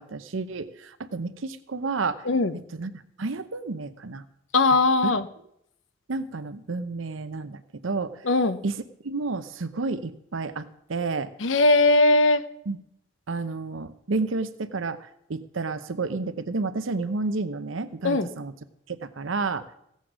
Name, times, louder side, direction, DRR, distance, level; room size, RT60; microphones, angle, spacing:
voice 1, 0.0-2.3 2.7-4.2 5.0-5.1 6.1-8.2 8.6-11.3 12.7-12.8 13.3-18.5 18.9-19.7, right 3 dB, 85° right, 12 dB, 0.7 m, -31 dB
voice 2, 4.5-5.2 8.3-8.6 11.4-12.4 18.0-18.3, left 2 dB, 75° left, 12 dB, 0.8 m, -19 dB
16.0 x 8.4 x 6.2 m, 0.76 s
head